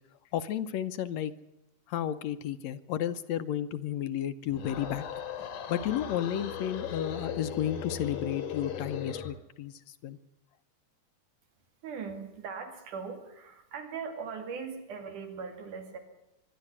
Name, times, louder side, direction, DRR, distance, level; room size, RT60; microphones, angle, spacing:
voice 1, 0.3-1.3 1.9-5.0 5.4-9.7 10.0-10.2, left 10 dB, 70° left, 12 dB, 1.9 m, -32 dB
sound 1, 4.5-9.4, left 7 dB, 85° left, 3.3 m, -38 dB
voice 2, 11.8-16.0, right 5 dB, 85° right, 6 dB, 4.0 m, -40 dB
24.0 x 11.5 x 9.7 m, 0.90 s
omnidirectional pair, 3.5 m